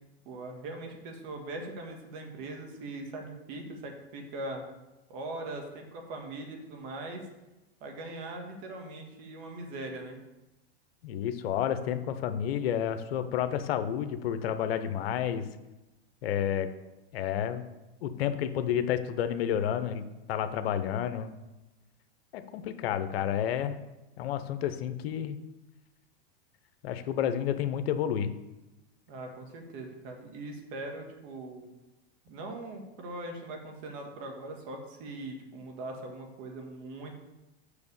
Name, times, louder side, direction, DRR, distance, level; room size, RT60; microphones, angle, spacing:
voice 1, 0.3-4.6 5.1-7.3 7.8-10.2 29.1-31.7 32.3-37.1, right 2 dB, 55° right, 2 dB, 1.9 m, -41 dB
voice 2, 11.0-15.5 16.2-16.7 17.1-17.6 18.0-21.3 22.3-23.8 24.2-25.4 26.8-28.3, left 9 dB, 70° left, 10 dB, 0.8 m, -30 dB
6.5 x 5.1 x 6.9 m, 1.0 s
hypercardioid pair, 125°, 32 cm